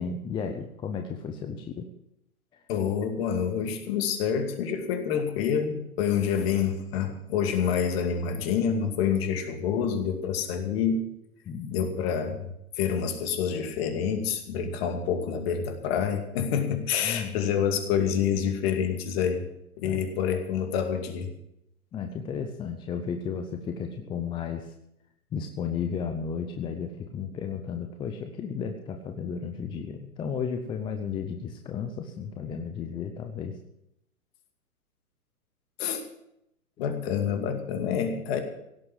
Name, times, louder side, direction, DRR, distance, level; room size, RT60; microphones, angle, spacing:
voice 1, 0.0-1.9 2.5-2.6 11.5-11.7 17.0-17.4 19.8-20.0 21.9-24.7 25.3-33.6, left 6 dB, 10° left, 5 dB, 0.7 m, -33 dB
voice 2, 2.7-11.0 11.7-12.5 12.8-19.5 19.8-21.3 35.8-36.0 36.8-38.4, left 7 dB, 40° left, 5 dB, 2.4 m, -27 dB
17.0 x 7.8 x 7.5 m, 0.81 s
hypercardioid pair, 125°, 45 cm